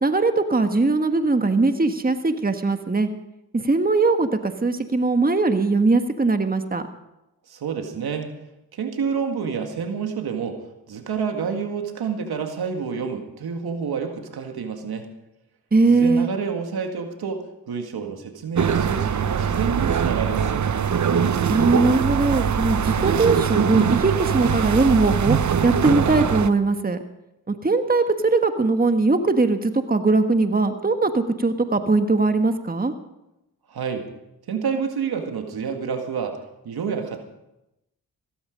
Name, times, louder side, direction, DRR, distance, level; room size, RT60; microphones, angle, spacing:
voice 1, 0.0-3.1 3.5-6.9 15.7-16.3 21.5-25.4 25.6-27.0 27.5-32.9, right 3 dB, 25° right, 7 dB, 1.5 m, -20 dB
voice 2, 7.5-8.3 8.7-10.6 10.9-15.1 15.9-20.8 33.7-34.1 34.5-36.4 36.6-37.2, right 6 dB, 80° right, 5 dB, 2.0 m, -28 dB
sound 1, 18.6-26.5, right 7 dB, 50° right, 0.9 m, -22 dB
16.0 x 14.0 x 5.2 m, 0.90 s
supercardioid pair, 45°, 37 cm